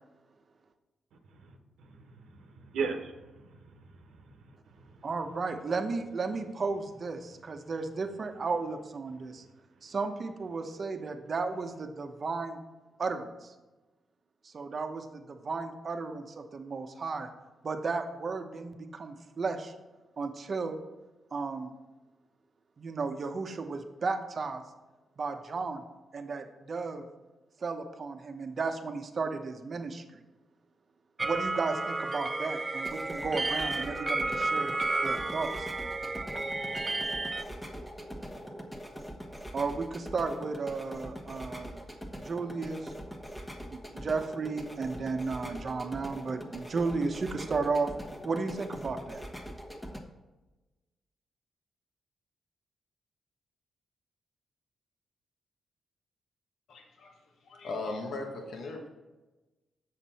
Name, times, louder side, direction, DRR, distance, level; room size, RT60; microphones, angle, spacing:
voice 1, 1.4-4.5, right 5 dB, 90° right, 4 dB, 1.0 m, -39 dB
voice 2, 5.0-9.4 9.8-12.6 13.0-13.5 14.4-17.3 17.6-19.7 20.2-20.8 21.3-21.7 22.8-24.6 25.2-25.8 26.1-27.0 27.6-30.2 31.2-34.7 35.0-35.7 39.5-41.8 42.2-42.9 43.7-47.9 48.2-49.2, right 4 dB, 50° right, 6 dB, 0.9 m, -34 dB
sound 1, 31.2-37.4, right 2 dB, 25° right, 0.4 m, -32 dB
sound 2, 32.7-50.0, equal, 10° left, 1.2 m, -43 dB
voice 3, 56.7-57.1 57.4-58.9, left 2 dB, 75° left, 2 dB, 1.2 m, -38 dB
7.4 x 6.6 x 4.2 m, 1.1 s
cardioid pair, 80°, 0 cm